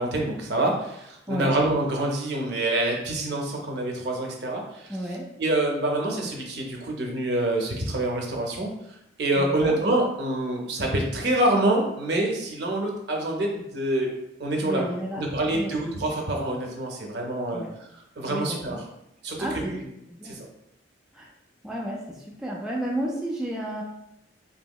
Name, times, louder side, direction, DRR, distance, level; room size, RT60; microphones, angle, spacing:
voice 1, 0.0-5.0 5.4-8.7 9.2-14.1 14.4-14.8 15.1-17.6 18.2-18.8 19.2-19.8 20.2-20.4, right 1 dB, 60° right, 1 dB, 0.6 m, -26 dB
voice 2, 1.3-1.6 4.9-5.3 9.4-9.8 14.6-15.7 17.5-17.7 18.3-18.8 19.4-19.8 20.1-20.4 21.1-21.3 21.6-23.8, right 1 dB, 5° right, -4 dB, 0.3 m, -32 dB
2.9 x 2.8 x 2.3 m, 0.82 s
head